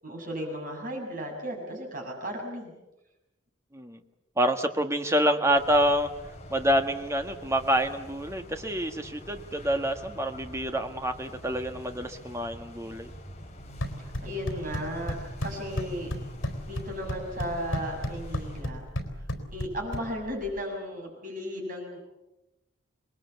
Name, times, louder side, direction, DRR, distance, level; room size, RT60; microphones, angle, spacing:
voice 1, 0.0-2.7 14.0-15.2 15.4-16.1 16.6-18.8 19.5-22.0, equal, 45° right, 1 dB, 6.9 m, -35 dB
voice 2, 4.4-6.1 6.5-13.1, equal, 15° right, 6 dB, 1.6 m, -27 dB
sound 1, 5.5-18.6, left 1 dB, 35° left, 3.2 m, -46 dB
sound 2, 13.6-20.6, equal, 75° left, 4.1 m, -35 dB
27.0 x 21.0 x 8.3 m, 0.99 s
head